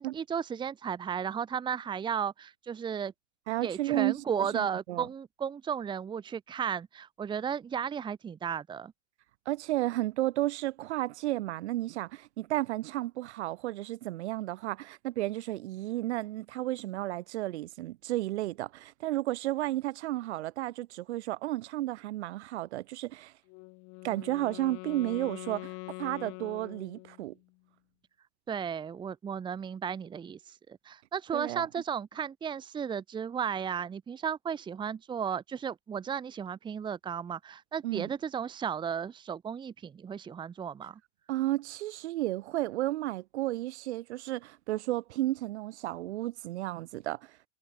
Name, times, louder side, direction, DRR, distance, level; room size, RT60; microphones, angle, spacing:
voice 1, 0.0-3.1 3.6-8.9 28.5-41.0, right 7 dB, 15° right, 1.5 m, -34 dB
voice 2, 3.5-5.1 9.5-23.3 24.0-27.3 31.3-31.7 37.8-38.1 41.3-47.3, right 16 dB, 65° right, 4.7 m, -33 dB
Wind instrument woodwind instrument, 23.5-27.4, left 30 dB, 40° left, 5.8 m, -44 dB
supercardioid pair, 160°, 36 cm